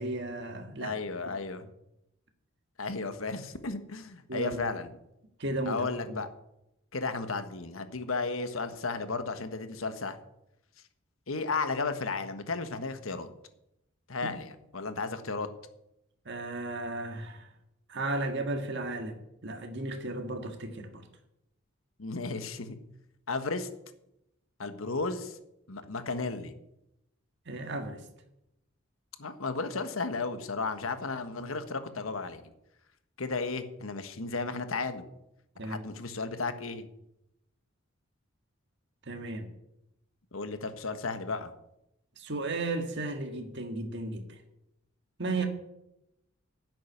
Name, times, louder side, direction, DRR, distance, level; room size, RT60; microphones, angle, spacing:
voice 1, 0.0-1.0 4.3-4.7 5.4-6.2 14.2-14.3 16.2-17.5 17.9-21.0 27.4-28.0 35.6-35.8 39.1-39.5 42.2-44.4 45.2-45.5, right 2 dB, 60° right, 5 dB, 1.7 m, -34 dB
voice 2, 0.8-1.7 2.8-4.9 5.7-6.3 6.9-10.2 11.3-13.3 14.1-15.5 22.0-22.8 23.3-23.7 24.6-25.4 25.7-26.5 29.2-32.4 33.2-35.1 35.6-36.9 40.3-41.5 45.4-45.5, left 3 dB, 90° left, 9 dB, 1.3 m, -34 dB
11.0 x 7.7 x 9.3 m, 0.85 s
head